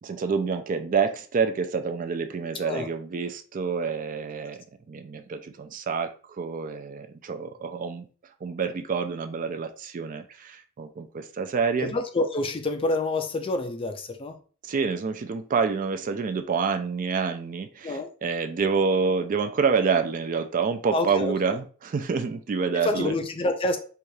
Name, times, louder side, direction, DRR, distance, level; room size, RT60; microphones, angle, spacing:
voice 1, 0.0-8.1 8.4-11.9 14.6-23.1, right 5 dB, 40° right, 0.3 m, -27 dB
voice 2, 11.8-14.4 17.8-18.1 20.9-21.6 22.7-23.8, left 2 dB, 25° left, 0.4 m, -27 dB
4.7 x 2.4 x 2.7 m
head